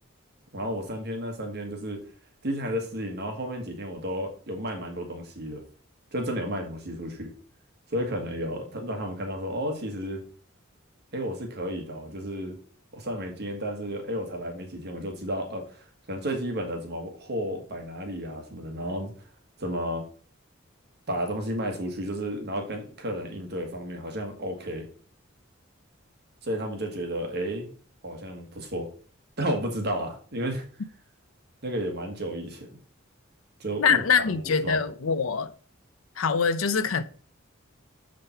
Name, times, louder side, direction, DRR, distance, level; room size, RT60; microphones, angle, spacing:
voice 1, 0.5-2.0 2.4-5.6 6.1-7.3 7.9-10.2 11.1-12.6 12.9-19.1 19.6-20.1 21.1-24.9 26.4-27.7 28.0-28.9 29.4-30.6 31.6-32.7 33.6-34.8, equal, 55° right, 1.6 m, -32 dB
voice 2, 33.8-35.5 36.2-37.0, left 6 dB, 90° left, 0.6 m, -24 dB
6.9 x 5.2 x 4.4 m
head